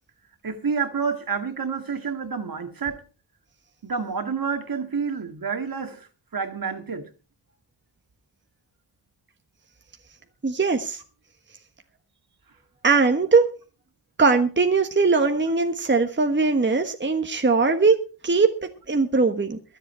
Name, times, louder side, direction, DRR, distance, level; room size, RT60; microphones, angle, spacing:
voice 1, 0.4-3.0 3.8-6.1 6.3-7.0, right 5 dB, 50° right, 2.0 m, -28 dB
voice 2, 10.4-11.0 12.8-13.5 14.2-18.0 18.2-18.5 18.9-19.6, right 4 dB, 25° right, 1.3 m, -20 dB
22.5 x 8.0 x 4.4 m
cardioid pair, 80°, 44 cm